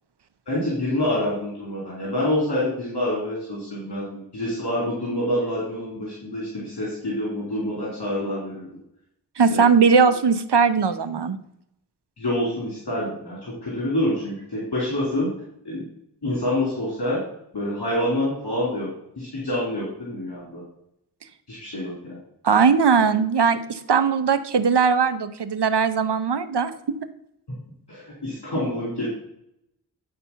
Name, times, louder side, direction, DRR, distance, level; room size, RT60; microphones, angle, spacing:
voice 1, 0.5-8.6 9.5-9.6 12.2-15.3 15.6-15.8 16.2-17.2 17.5-18.9 19.2-20.6 21.5-22.2 27.9-29.1, left 1 dB, 70° left, -6 dB, 2.7 m, -27 dB
voice 2, 9.4-11.4 22.4-26.7, right 5 dB, 75° right, 12 dB, 0.7 m, -19 dB
9.4 x 4.3 x 5.6 m, 0.77 s
wide cardioid pair, 45°, 41 cm